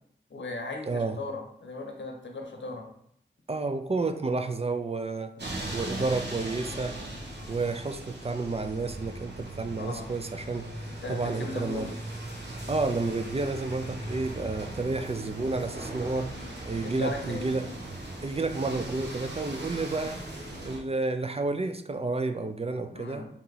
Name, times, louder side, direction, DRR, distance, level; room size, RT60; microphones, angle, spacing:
voice 1, 0.3-2.9 5.4-5.6 9.7-10.1 11.0-12.0 16.3-16.5 16.8-17.6 22.9-23.2, left 2 dB, 75° left, 2 dB, 0.8 m, -38 dB
voice 2, 0.9-1.2 3.5-5.3 5.7-7.0 7.5-10.7 11.1-11.9 12.7-16.3 16.6-17.7 18.2-20.2 20.6-23.3, right 3 dB, 35° right, 8 dB, 0.4 m, -30 dB
sound 1, 5.4-20.8, right 1 dB, 65° right, 1.1 m, -39 dB
3.6 x 2.9 x 4.0 m, 0.69 s
cardioid pair, 50°, 19 cm